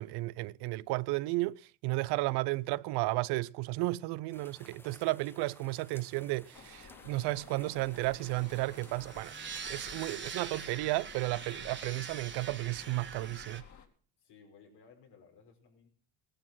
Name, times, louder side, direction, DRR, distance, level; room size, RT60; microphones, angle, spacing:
voice 1, 0.0-9.3 9.7-13.6, right 20 dB, 75° right, 0.7 m, -33 dB
sound 1, 4.3-10.8, left 1 dB, 5° left, 0.8 m, -58 dB
sound 2, 6.5-13.9, left 6 dB, 45° left, 3.1 m, -54 dB
sound 3, 7.8-13.6, right 6 dB, 30° right, 1.5 m, -44 dB
voice 2, 10.1-10.8 14.2-15.9, left 5 dB, 80° left, 5.5 m, -59 dB
17.0 x 11.5 x 6.2 m
cardioid pair, 95°, 40 cm